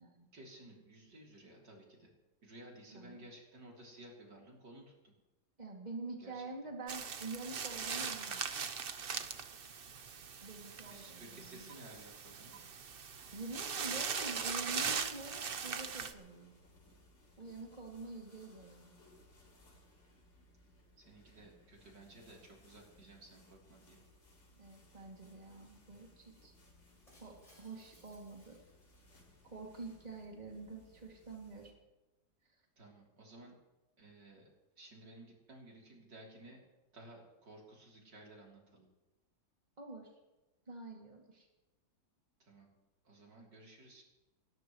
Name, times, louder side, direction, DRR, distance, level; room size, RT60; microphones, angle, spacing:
voice 1, 0.3-2.1 2.4-5.1 6.2-6.5 10.9-12.6 21.0-24.0 32.8-33.6 34.0-34.5 34.8-36.6 36.9-38.9 42.4-42.7 43.0-44.0, right 1 dB, 75° right, -2 dB, 3.9 m, -55 dB
voice 2, 2.9-3.3 5.6-8.5 10.4-11.7 13.3-16.6 17.4-18.9 24.6-26.5 27.2-28.6 29.4-31.7 39.8-40.1 40.7-41.5, right 3 dB, 25° right, -1 dB, 2.6 m, -47 dB
sound 1, 6.9-16.1, right 6 dB, 45° right, 0.8 m, -40 dB
sound 2, 13.1-31.7, left 1 dB, 85° left, 4.4 m, -64 dB
Shatter, 27.1-29.5, left 1 dB, 20° left, 5.2 m, -67 dB
29.5 x 13.5 x 3.1 m, 1.1 s
omnidirectional pair, 1.9 m